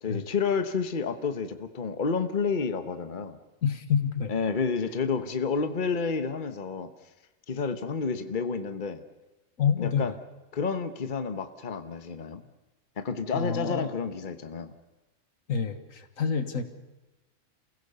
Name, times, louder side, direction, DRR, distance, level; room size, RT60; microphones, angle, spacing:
voice 1, 0.0-3.4 4.3-6.9 7.5-9.0 9.8-10.1 10.5-12.5 13.0-14.7, left 5 dB, 40° left, 9 dB, 1.3 m, -30 dB
voice 2, 3.6-4.3 9.6-10.0 13.3-13.9 15.5-16.6, left 6 dB, 75° left, 9 dB, 1.9 m, -27 dB
29.0 x 16.5 x 6.9 m, 1.1 s
omnidirectional pair, 1.4 m